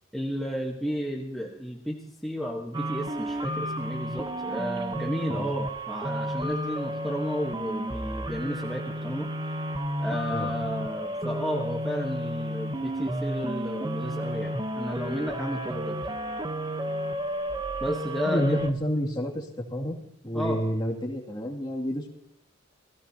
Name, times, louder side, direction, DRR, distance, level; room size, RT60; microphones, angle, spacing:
voice 1, 0.1-9.3 10.0-16.0 17.8-18.6 20.3-20.6, equal, ahead, -1 dB, 1.3 m, -32 dB
sound 1, 2.7-18.7, equal, 20° right, 1.0 m, -32 dB
voice 2, 18.3-19.4 19.7-20.0 20.2-22.1, equal, 20° left, -1 dB, 2.4 m, -29 dB
29.0 x 17.0 x 2.9 m, 0.72 s
head